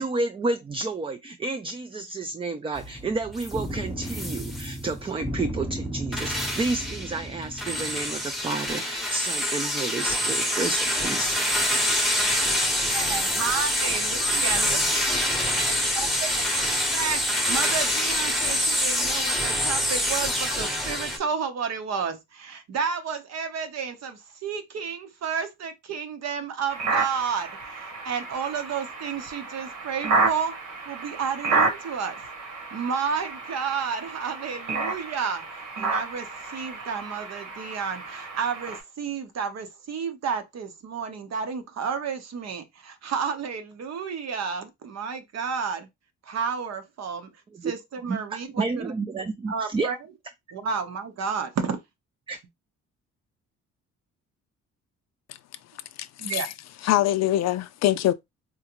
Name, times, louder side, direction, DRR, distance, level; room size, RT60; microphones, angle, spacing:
voice 1, 0.0-11.6 47.5-47.7 48.1-49.9 52.3-52.4, right 3 dB, 20° right, 0.3 m, -31 dB
sound 1, 2.8-21.2, left 1 dB, ahead, 0.9 m, -26 dB
voice 2, 12.9-15.3 16.3-16.4 16.9-30.6 30.9-32.2 32.7-35.4 35.8-45.9 46.2-47.3 47.6-48.9 49.2-50.0 50.5-51.8 56.2-56.5, right 6 dB, 60° right, 0.9 m, -31 dB
sound 2, 26.7-38.8, right 3 dB, 75° right, 1.4 m, -30 dB
voice 3, 56.0-56.4 56.8-58.1, left 13 dB, 60° left, 0.4 m, -23 dB
3.8 x 2.1 x 2.9 m
cardioid pair, 90°, 30 cm